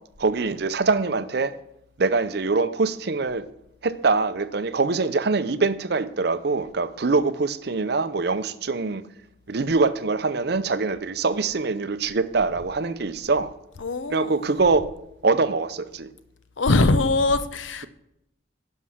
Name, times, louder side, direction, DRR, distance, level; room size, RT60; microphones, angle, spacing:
voice 1, 0.2-1.6 2.0-3.4 3.8-9.0 9.5-13.5 14.1-14.9 15.2-16.1, right 4 dB, 55° right, 0.6 m, -23 dB
voice 2, 13.8-14.4 16.6-17.9, left 2 dB, 75° left, 0.7 m, -22 dB
11.5 x 5.5 x 6.2 m
head